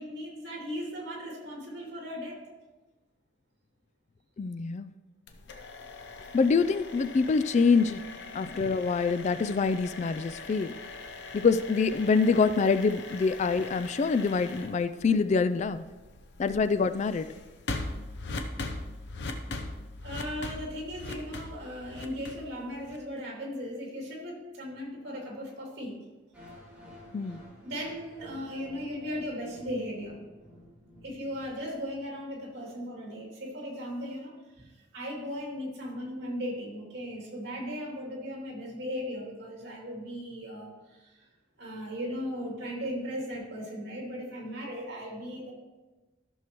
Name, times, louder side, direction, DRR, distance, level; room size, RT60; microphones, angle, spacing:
voice 1, 0.0-2.4 20.0-26.0 27.6-30.1 31.0-41.3 41.6-45.5, equal, 60° right, -2 dB, 2.6 m, -37 dB
voice 2, 4.4-4.9 6.3-8.0 8.3-10.7 11.3-15.8 16.4-17.3 27.1-27.4, left 4 dB, 40° left, 12 dB, 0.3 m, -25 dB
sound 1, 5.3-23.2, left 2 dB, 65° left, 0.8 m, -41 dB
sound 2, 26.3-32.3, equal, 10° right, 3.0 m, -52 dB
13.5 x 6.4 x 3.0 m, 1.2 s
head